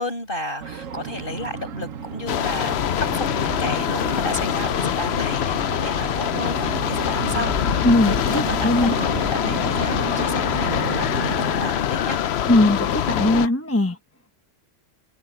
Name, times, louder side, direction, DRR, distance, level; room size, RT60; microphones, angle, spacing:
voice 1, 0.0-12.2, left 1 dB, 40° left, 6.1 m, -33 dB
sound 1, 0.6-11.7, right 7 dB, 90° right, 1.4 m, -33 dB
sound 2, 2.3-13.5, left 9 dB, 60° left, 0.9 m, -24 dB
voice 2, 7.8-9.0 12.5-14.0, left 1 dB, 10° left, 1.0 m, -20 dB
omnidirectional pair, 1.3 m